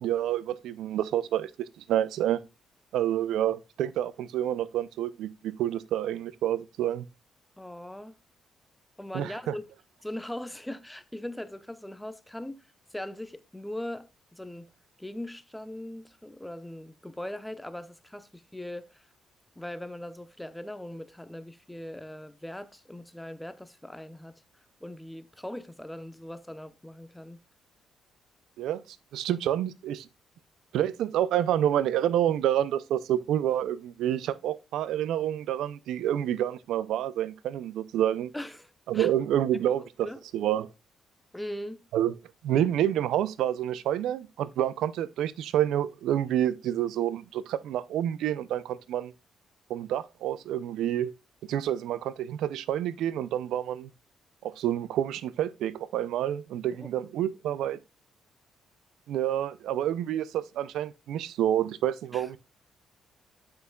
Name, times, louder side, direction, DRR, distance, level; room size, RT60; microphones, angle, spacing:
voice 1, 0.0-2.4 2.9-7.0 9.1-9.5 28.6-28.8 29.1-30.1 30.7-38.3 38.9-40.7 41.9-42.1 42.4-49.1 49.7-51.1 51.5-53.9 54.4-57.8 59.1-62.4, right 11 dB, 85° right, 0.5 m, -28 dB
voice 2, 7.6-8.2 9.0-9.7 10.0-14.7 15.0-19.1 19.6-24.4 24.8-27.4 38.3-39.1 39.8-40.2 41.3-41.8 56.8-56.9 62.1-62.3, left 1 dB, 5° left, 0.7 m, -40 dB
7.9 x 5.8 x 2.3 m
cardioid pair, 90°, 0 cm